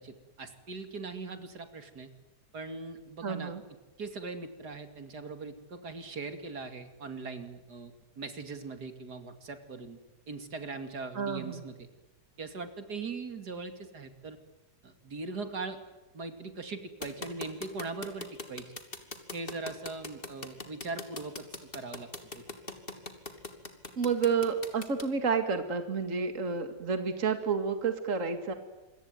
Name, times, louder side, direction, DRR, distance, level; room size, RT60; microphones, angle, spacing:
voice 1, 0.0-2.1 2.5-3.5 4.0-10.0 10.3-11.9 12.4-14.4 14.8-15.8 16.1-18.7 19.3-21.5 21.7-22.1 22.3-22.4, right 3 dB, 70° right, 8 dB, 3.0 m, -40 dB
voice 2, 3.2-3.6 11.2-11.6 24.0-28.5, right 5 dB, 50° right, 8 dB, 2.5 m, -30 dB
sound 1, 17.0-25.0, left 3 dB, 30° left, 2.9 m, -40 dB
27.5 x 23.0 x 9.2 m, 1.1 s
omnidirectional pair, 1.8 m